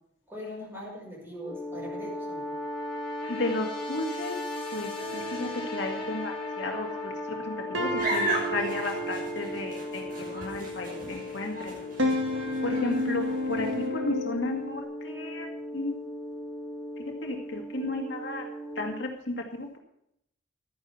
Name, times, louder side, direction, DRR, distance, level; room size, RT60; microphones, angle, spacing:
voice 1, 0.3-2.5, left 1 dB, 10° right, -3 dB, 5.7 m, -41 dB
sound 1, 1.4-19.0, left 2 dB, 30° left, 3.1 m, -37 dB
voice 2, 3.3-4.4 4.7-10.1 10.3-11.7 12.6-15.5 15.7-16.0 17.2-18.4 18.8-19.8, left 2 dB, 70° left, 1 dB, 2.3 m, -33 dB
sound 2, 5.0-6.8 7.3-7.4 7.7-11.0 11.6-14.8, equal, 80° right, 2.0 m, -33 dB
sound 3, 8.0-13.9, right 1 dB, 45° right, 6.1 m, -36 dB
13.0 x 10.0 x 5.6 m, 0.76 s
head